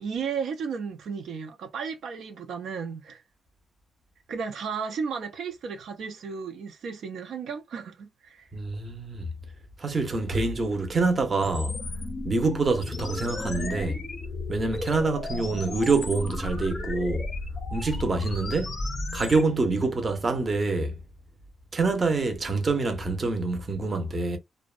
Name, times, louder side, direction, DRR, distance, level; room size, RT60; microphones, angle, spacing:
voice 1, 0.0-3.2 4.3-8.5 15.3-15.5, right 6 dB, 70° right, 0.4 m, -34 dB
voice 2, 8.5-9.3 9.8-11.8 12.2-14.1 14.5-17.3 17.7-18.8 19.1-21.0 21.7-24.4, right 3 dB, 25° right, 0.6 m, -26 dB
sound 1, 11.4-19.4, left 2 dB, 30° left, 0.6 m, -34 dB
2.5 x 2.1 x 2.4 m
wide cardioid pair, 160°, 0 cm